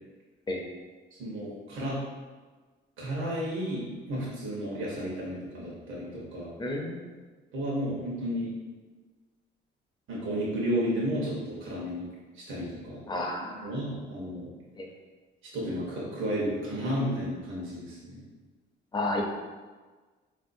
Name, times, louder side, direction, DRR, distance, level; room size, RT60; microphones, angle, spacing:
voice 1, 1.1-2.0 3.0-6.5 7.5-8.5 10.1-12.1 12.3-13.0 13.6-14.5 15.5-18.2, equal, 80° right, -6 dB, 0.9 m, -32 dB
voice 2, 6.6-7.0 13.1-13.6 14.8-14.9 18.9-19.2, left 2 dB, 20° left, 1 dB, 0.5 m, -31 dB
3.7 x 2.6 x 2.6 m, 1.4 s
cardioid pair, 90°, 20 cm